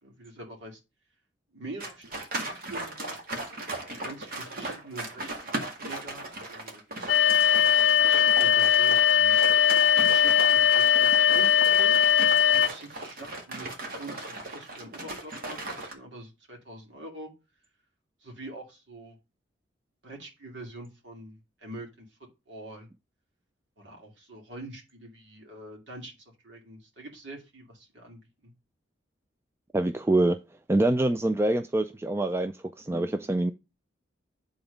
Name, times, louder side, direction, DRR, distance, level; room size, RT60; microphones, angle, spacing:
voice 1, 0.0-0.8 1.5-2.0 2.3-3.2 4.0-9.4 10.1-12.0 12.7-17.3 18.2-19.2 20.0-22.1 22.5-22.9 23.8-28.5, right 1 dB, 75° right, 2.5 m, -45 dB
sound 1, 1.8-15.9, right 2 dB, 55° right, 1.8 m, -37 dB
sound 2, 7.1-12.7, left 9 dB, 75° left, 0.4 m, -20 dB
voice 2, 29.7-30.4 30.7-33.5, right 1 dB, 15° right, 0.4 m, -25 dB
9.0 x 3.9 x 5.1 m
head